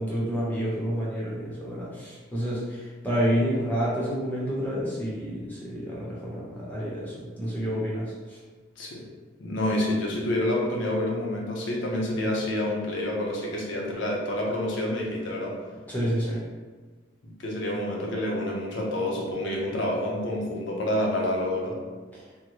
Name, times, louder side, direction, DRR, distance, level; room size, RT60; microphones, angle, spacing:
voice 1, 0.0-8.4 15.9-16.5 22.1-22.2, equal, 10° left, -7 dB, 0.7 m, -29 dB
voice 2, 9.4-15.6 17.2-21.8, left 1 dB, 75° left, -1 dB, 0.7 m, -28 dB
3.6 x 2.1 x 3.0 m, 1.3 s
head